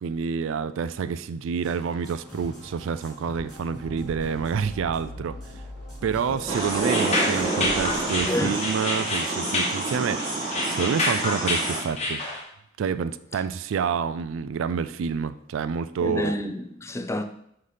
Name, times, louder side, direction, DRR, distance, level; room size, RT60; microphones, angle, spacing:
voice 1, 0.0-5.4 6.0-12.2 12.8-16.4, right 6 dB, 70° right, 0.3 m, -28 dB
sound 1, 1.6-8.6, equal, ahead, 2.6 m, -42 dB
sound 2, 6.5-11.8, right 2 dB, 25° right, 2.1 m, -28 dB
sound 3, 6.9-12.4, left 2 dB, 35° left, 1.2 m, -28 dB
voice 2, 8.3-8.6 16.0-17.2, left 1 dB, 15° left, 0.4 m, -29 dB
5.7 x 3.3 x 5.5 m
head